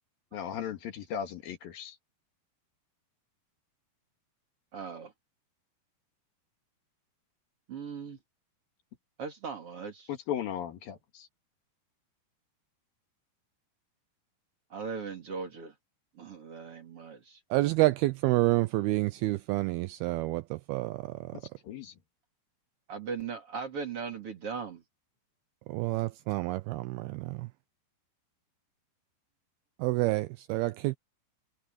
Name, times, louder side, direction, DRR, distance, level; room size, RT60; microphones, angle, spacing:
voice 1, 0.3-2.0 10.1-11.3 21.3-21.9, left 9 dB, 60° left, 3.2 m, -37 dB
voice 2, 4.7-5.1 7.7-8.2 9.2-10.1 14.7-15.7 16.2-17.4 22.9-24.8, right 5 dB, 40° right, 3.0 m, -38 dB
voice 3, 17.5-21.4 25.7-27.5 29.8-31.0, right 19 dB, 90° right, 2.2 m, -28 dB
omnidirectional pair, 5.0 m